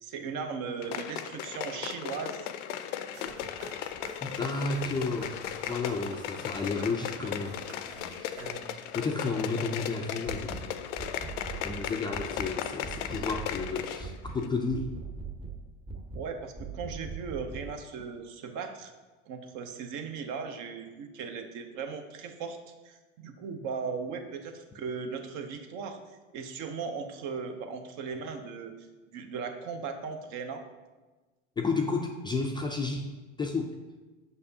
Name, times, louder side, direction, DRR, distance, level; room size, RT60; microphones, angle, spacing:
voice 1, 0.0-2.5 16.1-18.9 19.3-22.6 22.8-26.0 26.3-28.7 29.1-30.6, right 5 dB, 55° right, 6 dB, 0.8 m, -37 dB
sound 1, 0.8-14.1 14.4-14.5, left 10 dB, 75° left, 0.5 m, -37 dB
sound 2, 3.1-9.0, right 3 dB, 85° right, 1.1 m, -48 dB
voice 2, 4.2-7.6 8.2-8.4 8.9-11.2 11.6-14.9 31.6-33.1 33.4-33.8, left 3 dB, 15° left, 2 dB, 0.3 m, -32 dB
sound 3, 10.3-10.7 11.0-11.8 12.1-12.5 12.8-13.7 14.0-14.4 14.7-15.6 15.9-16.3 16.6-17.7, right 4 dB, 15° right, 0.7 m, -40 dB
6.6 x 5.3 x 2.8 m, 1.2 s
hypercardioid pair, 90°, 36 cm